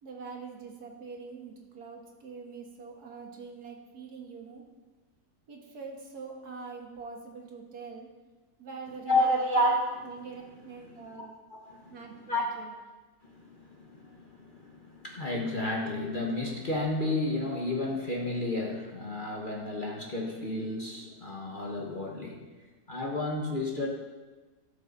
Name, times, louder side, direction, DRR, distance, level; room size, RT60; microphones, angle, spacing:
voice 1, 0.0-4.6 5.5-8.1 8.6-11.4 11.9-12.7, right 5 dB, 65° right, 1 dB, 1.9 m, -44 dB
voice 2, 9.1-10.1 10.9-11.2 11.5-12.0 12.3-12.5 13.2-22.5 22.9-23.9, left 1 dB, 35° left, -1 dB, 1.2 m, -31 dB
17.0 x 6.8 x 4.0 m, 1.3 s
omnidirectional pair, 1.8 m